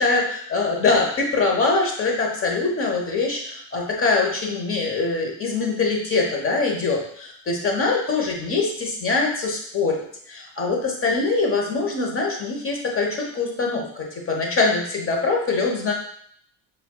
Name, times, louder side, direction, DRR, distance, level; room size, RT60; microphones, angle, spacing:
voice 1, 0.5-15.9, left 3 dB, 30° left, 0 dB, 1.2 m, -23 dB
7.0 x 2.6 x 2.3 m, 0.64 s
supercardioid pair, 100°, 41 cm